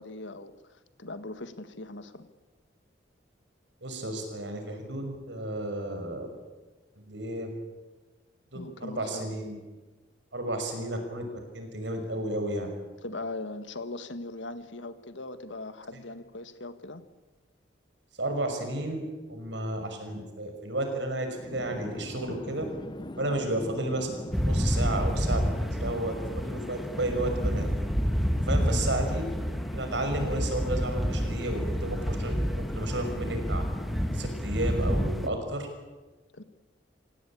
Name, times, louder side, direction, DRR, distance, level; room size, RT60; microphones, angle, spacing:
voice 1, 0.0-2.3 8.5-9.3 13.0-17.0 23.2-23.4 28.5-28.8 36.3-36.4, left 2 dB, 90° left, 11 dB, 1.8 m, -40 dB
voice 2, 3.8-6.3 7.1-7.5 8.5-9.6 10.3-11.3 11.5-12.7 18.2-19.0 19.3-22.6 23.2-24.1 24.4-27.7 28.4-29.3 29.7-33.6 34.1-35.7, right 1 dB, 75° right, 5 dB, 5.9 m, -32 dB
Chatter / Fixed-wing aircraft airplane, 21.3-34.7, left 1 dB, 25° left, 0.7 m, -41 dB
sound 1, 24.3-35.3, equal, ahead, 1.5 m, -29 dB
27.5 x 17.5 x 8.7 m, 1.3 s
head